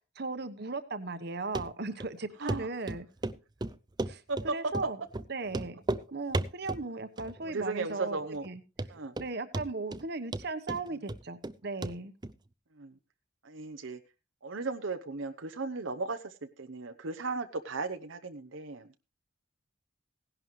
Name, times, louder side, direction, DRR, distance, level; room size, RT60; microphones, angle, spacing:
voice 1, 0.2-3.1 4.1-5.0 5.3-5.8 6.1-8.6 9.2-12.1, right 3 dB, 55° right, 11 dB, 1.1 m, -37 dB
Run, 1.5-1.7 2.0-2.1 2.5-2.6 2.9-4.5 4.7-4.9 5.1-5.2 5.5-6.0 6.3-6.8 7.2-7.6 7.9-8.0 8.4-8.5 8.8-9.3 9.5-10.0 10.3-11.5 11.8-11.9 12.2-12.3, right 2 dB, 20° right, 0.5 m, -33 dB
voice 2, 4.3-4.7 7.4-8.4 8.9-9.2 12.7-13.0 13.4-14.0 14.4-18.9, right 3 dB, 80° right, 6 dB, 0.9 m, -36 dB
17.0 x 11.0 x 3.2 m, 0.29 s
head